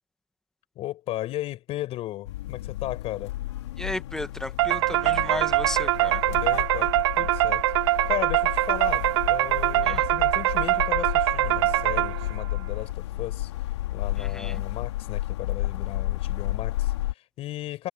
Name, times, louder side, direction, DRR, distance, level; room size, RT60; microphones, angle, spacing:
voice 1, 0.8-3.4 6.3-7.7 8.1-13.5 13.9-17.9, left 15 dB, 45° left, 5.2 m, -35 dB
sound 1, 2.2-17.1, left 15 dB, 85° left, 3.1 m, -32 dB
voice 2, 3.8-6.3 9.8-10.0 14.2-14.6, left 1 dB, 5° left, 1.2 m, -34 dB
sound 2, 4.6-12.4, right 17 dB, 75° right, 0.8 m, -23 dB
supercardioid pair, 120°, 14 cm